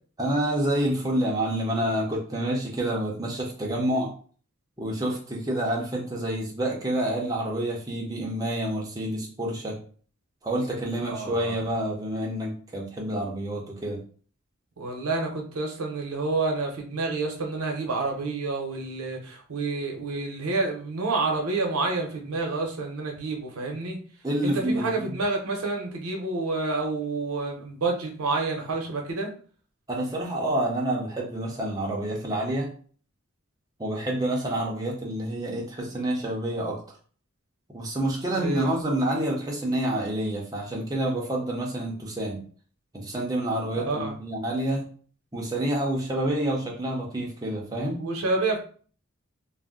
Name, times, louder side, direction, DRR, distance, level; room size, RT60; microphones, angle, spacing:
voice 1, 0.2-4.1 4.8-9.8 10.4-14.0 24.2-25.1 29.9-32.7 33.8-36.8 37.7-42.4 42.9-44.8 45.3-48.0, right 1 dB, 15° right, -3 dB, 0.5 m, -28 dB
voice 2, 11.0-11.6 14.8-24.0 24.4-29.3 38.3-38.7 43.7-44.2 48.0-48.6, right 3 dB, 85° right, 2 dB, 0.7 m, -29 dB
2.5 x 2.0 x 3.6 m, 0.43 s
head